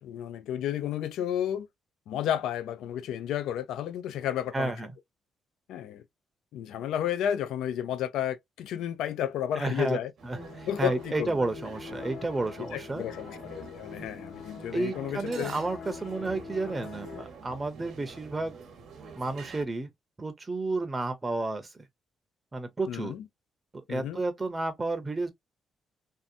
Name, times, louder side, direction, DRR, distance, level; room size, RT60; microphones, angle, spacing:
voice 1, 0.0-1.7 2.1-4.7 5.7-6.0 6.5-10.1 10.7-11.4 12.6-15.6 22.9-23.2 23.9-24.2, left 10 dB, 85° left, 0.3 m, -32 dB
voice 2, 4.5-4.9 9.6-13.0 14.7-18.6 19.2-19.9 20.2-21.7 22.5-23.1 23.7-25.3, right 2 dB, 20° right, 0.6 m, -31 dB
sound 1, 10.2-19.6, right 5 dB, 65° right, 0.8 m, -47 dB
sound 2, 10.4-17.2, left 7 dB, 65° left, 0.8 m, -44 dB
2.6 x 2.1 x 2.5 m
cardioid pair, 90°, 0 cm